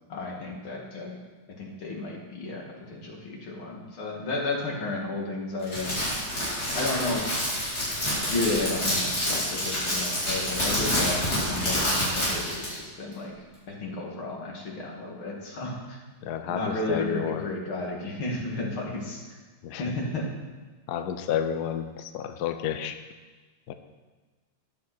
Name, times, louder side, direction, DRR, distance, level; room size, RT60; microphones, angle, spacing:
voice 1, 0.1-1.2 1.6-5.9 6.8-7.3 8.3-13.3 13.7-16.0 16.5-19.4 19.7-20.3, left 2 dB, 85° left, -1 dB, 3.0 m, -32 dB
Crackle, 5.6-12.8, equal, 45° left, 5.4 m, -27 dB
voice 2, 16.2-17.4 19.6-19.8 20.9-23.0 23.7-23.8, left 9 dB, 65° left, 8 dB, 1.1 m, -30 dB
13.5 x 11.0 x 4.5 m, 1.3 s
omnidirectional pair, 2.2 m